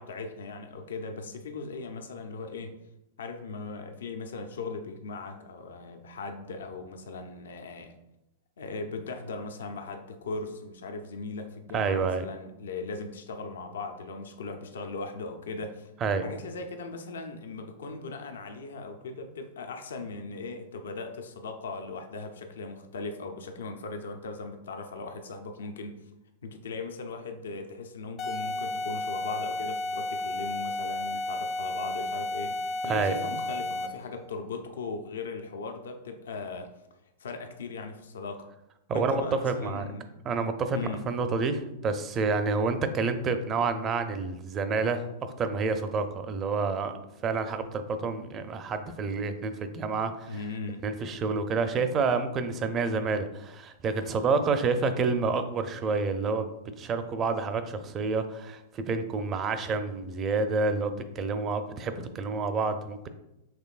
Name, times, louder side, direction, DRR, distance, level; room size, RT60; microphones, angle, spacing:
voice 1, 0.0-2.8 3.2-7.9 8.6-15.9 16.2-26.0 26.4-36.7 37.2-38.4 38.9-40.1 40.7-41.1 50.3-50.9, left 3 dB, 80° left, 5 dB, 0.6 m, -38 dB
voice 2, 11.7-12.2 16.0-16.2 32.9-33.1 38.9-39.9 40.2-47.0 47.2-50.4 50.8-56.5 56.8-63.1, right 4 dB, 30° right, 9 dB, 0.5 m, -28 dB
sound 1, 28.2-34.1, left 2 dB, 35° left, 0.5 m, -32 dB
6.0 x 3.2 x 2.4 m, 0.90 s
hypercardioid pair, 115°, 0 cm